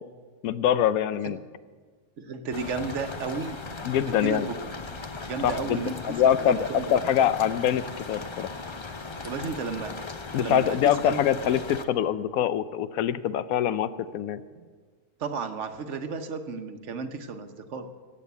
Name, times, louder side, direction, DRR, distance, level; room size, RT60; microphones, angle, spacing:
voice 1, 0.4-1.4 3.8-4.5 5.4-5.8 6.1-8.5 10.3-14.4, left 10 dB, 75° left, 14 dB, 1.0 m, -24 dB
voice 2, 2.2-3.6 4.0-4.7 5.3-7.0 9.2-9.9 10.4-11.2 14.5-14.7 15.2-17.9, right 4 dB, 55° right, 8 dB, 1.2 m, -33 dB
sound 1, 2.5-11.8, left 3 dB, 35° left, 0.4 m, -38 dB
15.0 x 8.4 x 8.2 m, 1.5 s
omnidirectional pair, 1.6 m